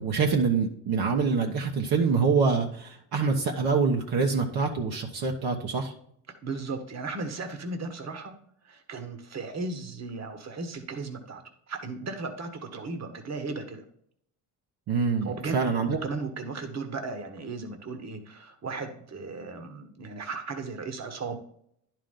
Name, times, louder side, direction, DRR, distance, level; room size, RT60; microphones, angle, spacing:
voice 1, 0.0-5.9 14.9-15.9, right 5 dB, 60° right, 1 dB, 1.3 m, -25 dB
voice 2, 6.4-8.3 8.6-11.4 11.7-13.8 15.2-21.4, right 3 dB, 40° right, 7 dB, 1.5 m, -35 dB
10.5 x 4.9 x 3.8 m, 0.67 s
supercardioid pair, 80°, 41 cm